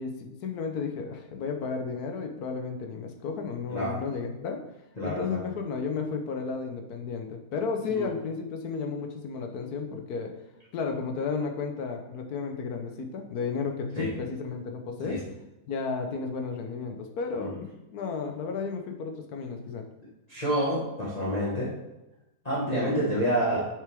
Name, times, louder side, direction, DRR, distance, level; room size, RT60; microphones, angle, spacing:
voice 1, 0.0-4.6 5.0-10.3 10.7-15.2 15.7-19.8, left 5 dB, 70° left, 4 dB, 1.3 m, -33 dB
voice 2, 5.0-5.4 7.9-8.0 14.0-14.1 15.1-15.2 17.4-17.5 20.3-21.7 22.4-23.7, equal, 25° left, -9 dB, 1.5 m, -28 dB
6.7 x 6.3 x 3.5 m, 0.97 s
omnidirectional pair, 1.8 m